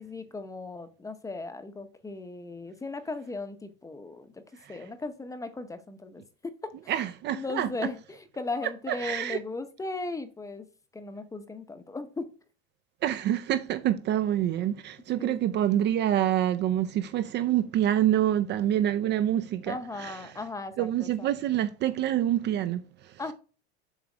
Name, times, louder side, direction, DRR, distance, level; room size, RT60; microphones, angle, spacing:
voice 1, 0.0-4.4 4.7-6.2 6.8-6.9 7.3-10.7 10.9-12.2 15.2-15.4 19.7-21.3 23.2-23.3, left 3 dB, 10° left, 0.8 m, -37 dB
voice 2, 6.9-7.7 8.9-9.4 13.0-20.3 20.8-23.1, right 11 dB, 35° right, 0.5 m, -27 dB
7.3 x 3.1 x 4.9 m
supercardioid pair, 130°, 32 cm